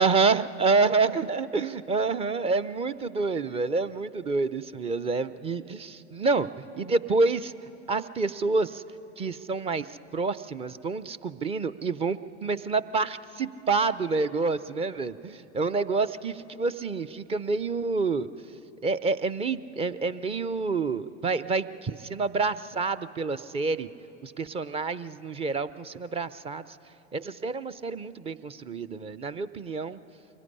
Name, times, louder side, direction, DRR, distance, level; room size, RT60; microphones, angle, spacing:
voice 1, 0.0-7.5 7.9-8.8 9.2-9.9 10.1-18.3 18.8-23.9 24.2-26.6 27.1-30.0, right 4 dB, 15° right, 16 dB, 0.6 m, -28 dB
24.0 x 20.5 x 9.8 m, 2.9 s
hypercardioid pair, 100°, 36 cm